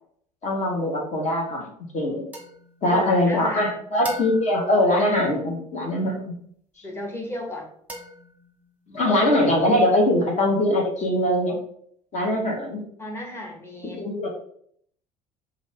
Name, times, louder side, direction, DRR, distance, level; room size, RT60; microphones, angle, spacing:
voice 1, 0.4-2.2 2.8-6.2 8.9-11.6 12.1-12.8 14.0-14.3, left 1 dB, 35° left, 0 dB, 1.8 m, -22 dB
sound 1, 2.3-3.6 4.0-5.9 7.9-8.9, equal, 10° right, 1.2 m, -41 dB
voice 2, 2.9-3.8 6.8-7.7 13.0-14.2, left 1 dB, 15° left, 0 dB, 1.5 m, -34 dB
4.9 x 2.8 x 3.5 m, 0.64 s
figure-of-eight pair, 65°, 19 cm